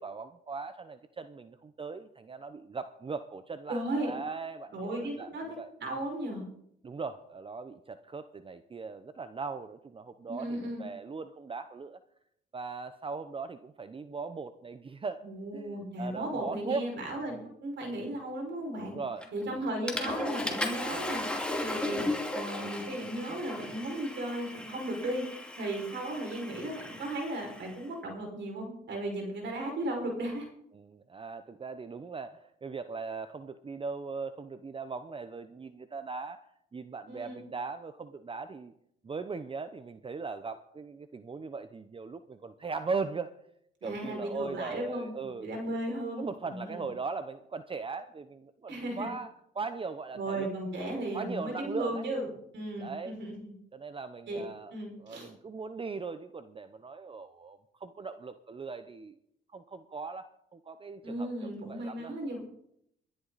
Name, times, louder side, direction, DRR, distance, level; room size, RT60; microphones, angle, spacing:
voice 1, 0.0-5.7 6.8-12.0 12.5-15.2 15.5-16.9 17.3-17.5 18.8-19.7 30.7-36.4 36.7-38.7 39.0-43.3 43.8-45.5 45.9-50.5 50.9-52.0 52.8-53.2 53.7-59.2 59.5-62.1, right 4 dB, 25° right, 11 dB, 0.7 m, -39 dB
voice 2, 3.7-4.1 4.7-5.4 5.8-6.4 10.3-10.8 15.2-19.0 19.3-21.2 21.6-22.0 22.3-25.2 25.6-30.5 37.1-37.4 43.8-46.8 48.7-49.1 50.1-52.3 52.5-53.5 54.3-54.4 54.7-55.3 61.0-62.4, right 1 dB, 65° right, 1 dB, 5.6 m, -35 dB
Water / Toilet flush, 19.2-19.5 19.9-27.7, left 1 dB, 5° left, 2.7 m, -36 dB
22.0 x 11.5 x 4.1 m, 0.75 s
cardioid pair, 90°, 20 cm